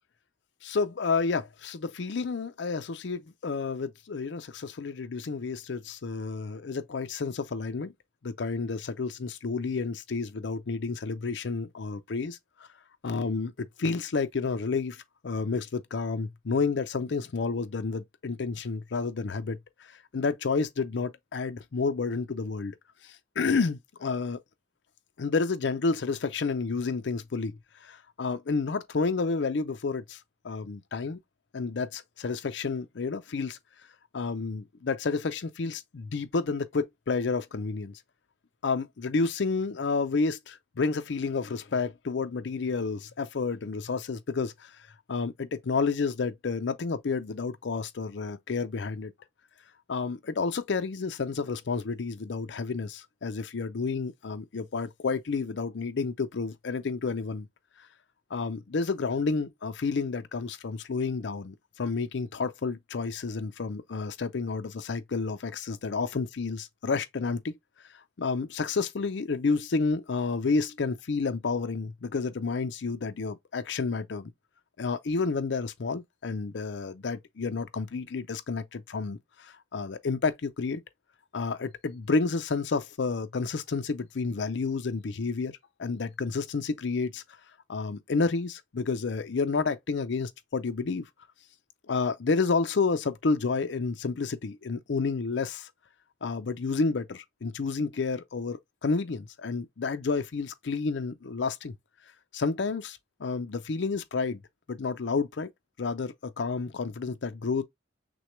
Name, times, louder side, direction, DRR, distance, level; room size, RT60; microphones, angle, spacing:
voice 1, 0.6-7.9 8.2-12.4 13.0-22.8 23.0-24.4 25.2-30.2 30.4-31.2 31.5-33.6 34.1-38.0 38.6-44.7 45.1-49.1 49.9-57.5 58.3-67.5 68.2-74.3 74.8-80.8 81.3-85.5 85.8-87.2 87.7-91.0 91.9-95.7 96.2-101.7 102.3-104.4 104.7-105.5 105.8-107.6, left 4 dB, 65° left, 0.5 m, -30 dB
6.1 x 2.2 x 3.1 m
head